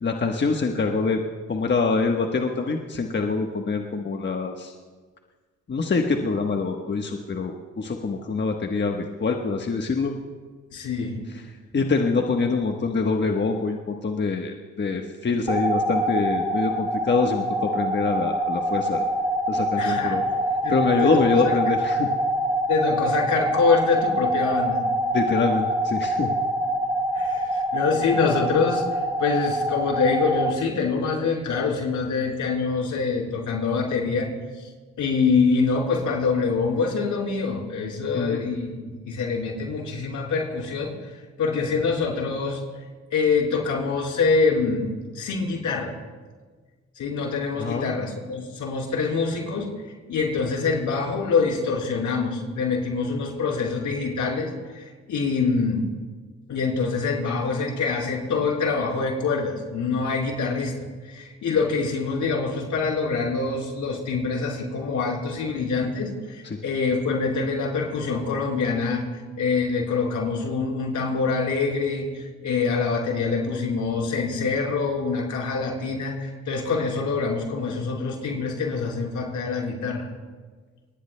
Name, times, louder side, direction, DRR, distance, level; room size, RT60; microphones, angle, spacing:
voice 1, 0.0-1.2 1.5-4.7 5.7-10.1 11.7-19.0 19.5-20.2 20.7-22.1 25.1-26.3 38.1-38.5 47.6-47.9, left 4 dB, 35° left, 3 dB, 1.2 m, -25 dB
voice 2, 10.7-11.2 19.8-20.2 20.6-21.6 22.7-24.8 27.1-34.3 35.0-40.9 41.4-42.6 43.1-45.9 47.0-49.7 50.1-55.8 56.5-60.7 61.1-69.1 69.4-80.1, left 4 dB, 75° left, -1 dB, 4.4 m, -25 dB
sound 1, 15.5-30.5, right 1 dB, 10° right, 1.5 m, -25 dB
27.0 x 19.5 x 2.2 m, 1.4 s
supercardioid pair, 65°, 30 cm